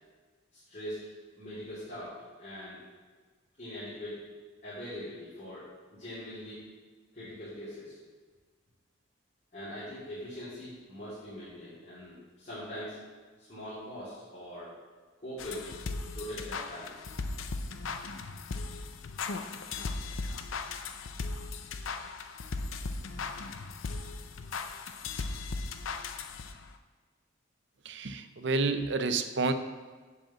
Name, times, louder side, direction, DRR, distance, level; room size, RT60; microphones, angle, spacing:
voice 1, 0.5-1.1 1.3-2.8 3.6-4.3 4.6-6.6 7.1-8.0 9.5-13.0 13.4-14.7 15.2-15.8 16.1-17.1, equal, 40° left, -11 dB, 3.0 m, -42 dB
sound 1, 15.4-26.7, left 4 dB, 85° left, 0.6 m, -37 dB
voice 2, 27.9-29.5, right 3 dB, 60° right, 10 dB, 0.6 m, -29 dB
7.7 x 4.9 x 7.2 m, 1.4 s
head